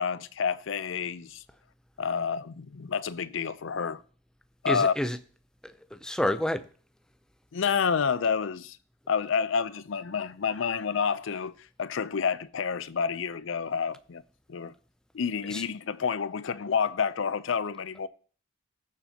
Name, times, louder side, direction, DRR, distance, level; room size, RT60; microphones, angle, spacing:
voice 1, 0.0-1.4 2.0-4.0 4.6-4.9 7.5-8.8 9.1-11.5 11.8-14.2 14.5-14.7 15.1-18.1, left 6 dB, 65° left, 0.5 m, -29 dB
voice 2, 4.7-5.2 5.6-6.6 15.5-15.6, left 1 dB, 5° left, 0.5 m, -29 dB
19.0 x 7.0 x 2.8 m
head